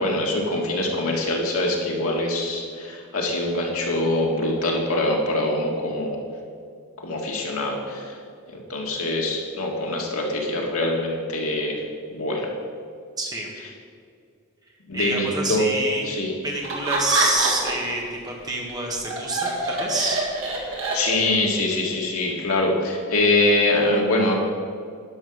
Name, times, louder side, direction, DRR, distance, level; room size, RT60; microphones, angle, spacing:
voice 1, 0.0-6.2 7.0-8.1 8.5-11.8 12.1-12.5 14.9-15.7 16.0-16.3 20.7-24.3, left 2 dB, 90° left, -1 dB, 1.9 m, -24 dB
voice 2, 13.2-13.5 14.9-16.1 16.4-20.2, right 2 dB, 20° right, -1 dB, 1.5 m, -27 dB
Laughter, 16.6-17.9 18.3-21.5, right 2 dB, 70° right, 1.9 m, -25 dB
11.0 x 5.9 x 6.4 m, 2.2 s
head